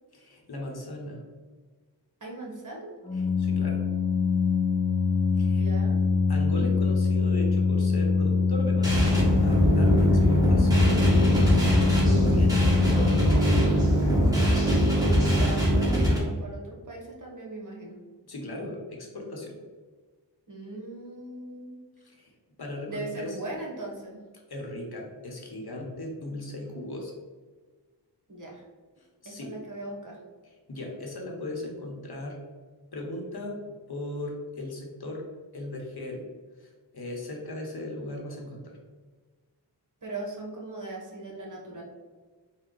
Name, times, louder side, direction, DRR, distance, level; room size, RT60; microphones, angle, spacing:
voice 1, 0.1-1.2 3.1-3.8 5.3-5.6 6.3-11.7 12.0-13.2 18.3-19.6 22.2-22.3 22.6-23.4 24.5-27.1 29.2-29.5 30.7-32.4 32.9-35.2 35.5-36.2 36.6-38.6, left 1 dB, 60° left, 0 dB, 0.9 m, -37 dB
voice 2, 2.2-2.9 5.5-6.0 15.0-18.0 20.5-21.7 22.9-24.2 28.3-28.6 29.2-30.2 40.0-41.8, right 2 dB, 45° right, -2 dB, 1.1 m, -39 dB
Organ, 3.0-13.8, left 4 dB, 10° left, 0.7 m, -24 dB
sound 1, 8.8-16.2, equal, 10° right, 1.4 m, -22 dB
4.6 x 2.2 x 3.8 m, 1.4 s
wide cardioid pair, 65°, 43 cm